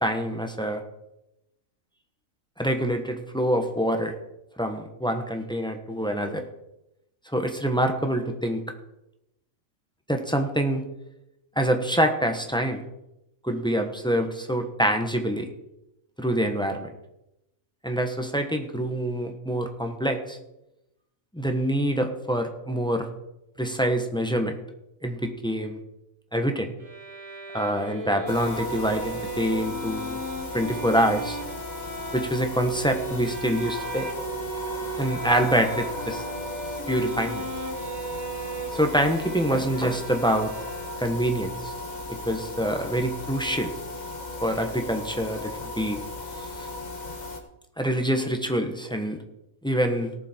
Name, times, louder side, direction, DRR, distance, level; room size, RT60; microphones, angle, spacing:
voice 1, 0.0-0.8 2.6-4.1 4.6-6.4 7.3-8.6 10.1-10.8 11.6-12.8 13.4-15.5 16.2-16.9 17.8-20.4 21.3-23.1 23.6-24.6 25.0-25.8 26.3-26.7 27.5-30.2 30.5-31.4 32.1-34.1 35.0-36.2 36.9-37.5 38.7-40.5 41.0-41.7 42.2-43.7 44.4-46.0 46.4-46.7 47.8-49.2 49.6-50.1, right 1 dB, 5° left, 5 dB, 1.0 m, -25 dB
Bowed string instrument, 26.8-41.3, right 2 dB, 40° right, 2.1 m, -37 dB
sound 1, 28.3-47.4, left 2 dB, 35° left, 1.4 m, -36 dB
18.0 x 7.3 x 4.4 m, 0.89 s
omnidirectional pair, 1.4 m